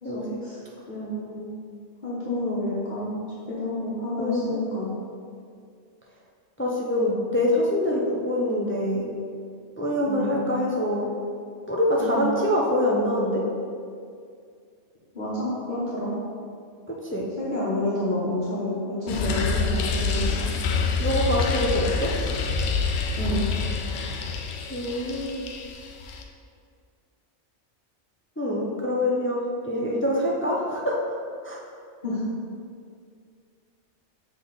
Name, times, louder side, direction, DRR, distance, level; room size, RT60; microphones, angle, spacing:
voice 1, 0.0-0.6 0.9-1.5 2.0-3.2 3.5-4.9 10.0-10.5 12.0-12.4 15.1-16.1 17.4-20.5 23.2-23.5 32.0-32.2, left 1 dB, 45° left, -10 dB, 1.4 m, -29 dB
voice 2, 4.2-4.6 6.6-9.1 9.8-11.1 11.7-13.4 17.0-17.3 21.0-22.1 24.7-25.5 28.4-30.9 31.4-31.6, left 1 dB, 15° left, -3 dB, 0.4 m, -25 dB
sound 1, 19.1-26.2, left 4 dB, 70° left, 0.8 m, -27 dB
6.7 x 3.5 x 4.0 m, 2.2 s
omnidirectional pair, 1.2 m